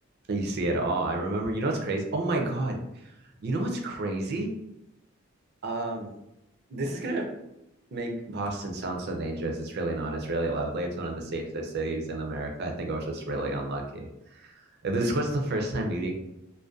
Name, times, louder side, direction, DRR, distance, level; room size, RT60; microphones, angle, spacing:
voice 1, 0.3-2.8 3.4-4.5 5.6-6.1 6.7-7.4 7.9-16.1, right 2 dB, 55° right, 2 dB, 0.4 m, -30 dB
2.5 x 2.1 x 2.3 m, 0.87 s
head